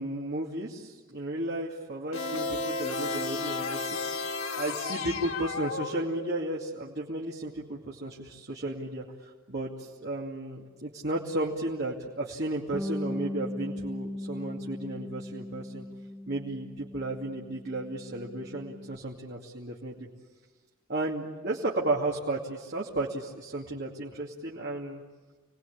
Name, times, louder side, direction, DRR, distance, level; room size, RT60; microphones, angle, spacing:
voice 1, 0.0-4.3 4.6-15.9 16.3-20.1 20.9-25.0, right 2 dB, 50° right, -3 dB, 2.6 m, -34 dB
sound 1, 2.1-6.5, left 3 dB, 75° left, 1.6 m, -33 dB
Bass guitar, 12.7-19.0, left 1 dB, ahead, 0.8 m, -38 dB
29.0 x 20.0 x 8.6 m, 1.3 s
head